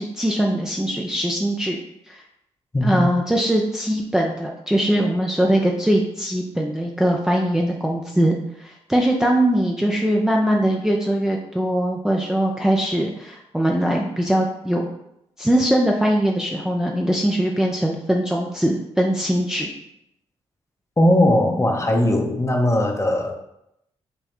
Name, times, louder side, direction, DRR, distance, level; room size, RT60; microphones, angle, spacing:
voice 1, 0.0-1.8 2.1-2.2 2.8-14.9 15.4-19.7, right 1 dB, 5° right, -1 dB, 0.5 m, -21 dB
voice 2, 2.7-3.1 21.0-23.4, left 1 dB, 20° left, 2 dB, 0.8 m, -19 dB
5.2 x 2.2 x 3.0 m, 0.80 s
hypercardioid pair, 40°, 13 cm